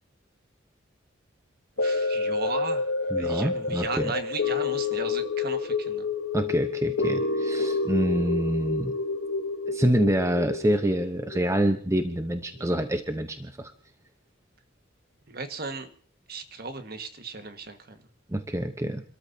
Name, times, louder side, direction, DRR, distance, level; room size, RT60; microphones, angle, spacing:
sound 1, 1.8-12.1 12.6-12.7, left 3 dB, 70° left, 1.2 m, -29 dB
voice 1, 1.8-2.9 3.2-6.1 15.3-15.9 16.3-18.0, right 3 dB, 50° right, 8 dB, 1.6 m, -36 dB
voice 2, 3.1-4.1 6.3-8.9 9.7-13.7 18.3-19.0, right 1 dB, 15° right, 8 dB, 0.8 m, -26 dB
29.5 x 13.5 x 2.8 m, 0.43 s
head